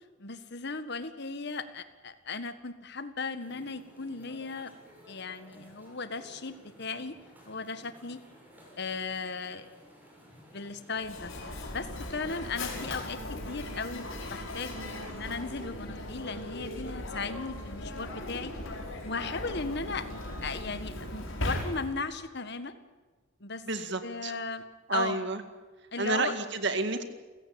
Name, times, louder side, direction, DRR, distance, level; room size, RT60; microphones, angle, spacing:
voice 1, 0.2-4.7 5.1-7.2 7.5-8.2 8.8-9.7 10.5-11.3 11.7-13.2 13.5-18.5 19.0-20.1 20.4-22.8 23.4-23.6 24.0-24.6 24.9-25.2 25.9-26.3, left 4 dB, 55° left, 11 dB, 1.7 m, -36 dB
sound 1, 3.4-18.1, equal, 10° right, 6.8 m, -56 dB
Mechanisms, 11.0-22.1, left 1 dB, 75° left, 5.5 m, -38 dB
voice 2, 23.7-24.4 24.9-25.4 26.0-27.0, right 3 dB, 60° right, 9 dB, 2.1 m, -30 dB
30.0 x 16.0 x 8.9 m, 1.3 s
head